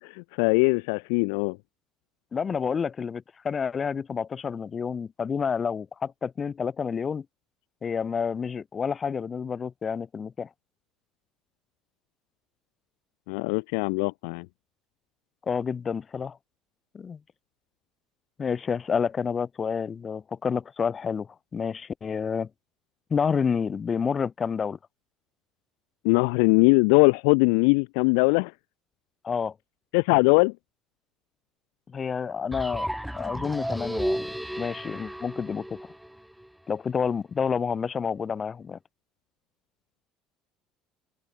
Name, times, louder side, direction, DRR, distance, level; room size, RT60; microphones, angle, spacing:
voice 1, 0.0-1.6 13.3-14.5 26.0-28.5 29.9-30.5, left 37 dB, 70° left, 0.4 m, -21 dB
voice 2, 2.3-7.3 7.8-10.5 15.5-16.4 16.9-17.2 18.4-22.5 23.1-24.8 29.2-29.5 31.9-32.9 33.1-34.2 34.6-35.8 36.7-38.8, left 6 dB, 35° left, 2.0 m, -29 dB
sound 1, 32.5-36.5, equal, 5° right, 0.5 m, -33 dB
open air
hypercardioid pair, 60°, 0 cm